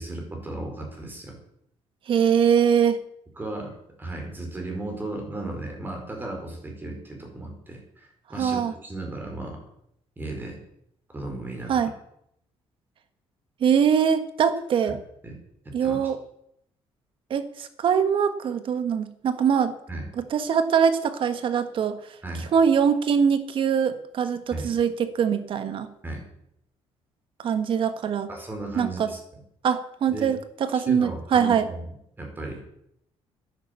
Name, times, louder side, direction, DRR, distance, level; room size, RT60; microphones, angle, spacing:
voice 1, 0.0-1.4 3.4-3.7 4.0-9.6 10.2-10.6 11.1-11.9 14.8-14.9 15.2-15.4 15.6-16.0 19.9-20.1 22.2-22.5 24.5-24.7 26.0-26.2 28.3-29.2 30.1-30.3 30.7-31.8 32.2-32.6, right 2 dB, 20° right, 2 dB, 4.8 m, -35 dB
voice 2, 2.1-3.0 8.4-8.7 11.7-11.9 13.6-15.0 15.7-16.2 17.3-19.7 20.2-22.0 22.5-25.9 27.4-28.3 28.8-29.1 29.6-30.4 30.7-31.7, right 7 dB, 55° right, 11 dB, 1.5 m, -22 dB
11.0 x 10.5 x 8.3 m, 0.75 s
cardioid pair, 125°, 11 cm